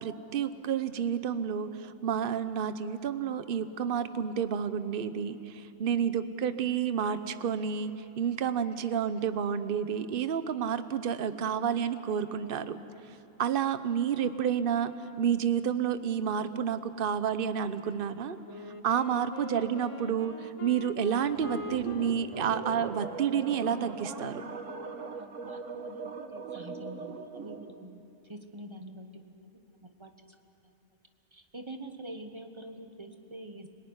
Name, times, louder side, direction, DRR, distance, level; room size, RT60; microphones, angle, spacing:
voice 1, 0.0-12.8 13.4-18.4 18.8-24.4, right 8 dB, 50° right, 12 dB, 1.0 m, -30 dB
Wind instrument woodwind instrument, 18.4-25.1, left 4 dB, 30° left, 0.8 m, -44 dB
sound 1, 21.3-27.8, right 4 dB, 75° right, 1.6 m, -40 dB
voice 2, 25.1-28.0 28.3-29.3 29.6-30.1 31.3-33.7, right 1 dB, 25° right, 5 dB, 1.4 m, -45 dB
26.5 x 18.5 x 9.7 m, 2.9 s
omnidirectional pair, 1.3 m